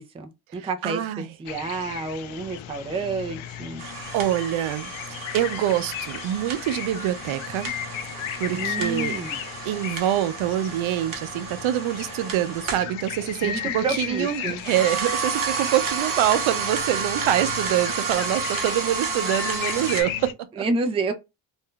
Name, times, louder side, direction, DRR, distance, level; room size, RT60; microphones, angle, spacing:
voice 1, 0.0-1.0 1.4-3.8 8.6-9.4 13.4-14.6 20.6-21.1, right 3 dB, 15° right, 0.3 m, -29 dB
voice 2, 0.5-1.3 4.1-7.7 8.4-9.2 9.7-20.6, right 12 dB, 80° right, 0.6 m, -25 dB
sound 1, 1.5-20.3, left 10 dB, 80° left, 0.5 m, -36 dB
sound 2, 3.8-12.9 14.5-20.0, right 5 dB, 45° right, 0.8 m, -31 dB
2.6 x 2.2 x 3.6 m
cardioid pair, 120°, 47 cm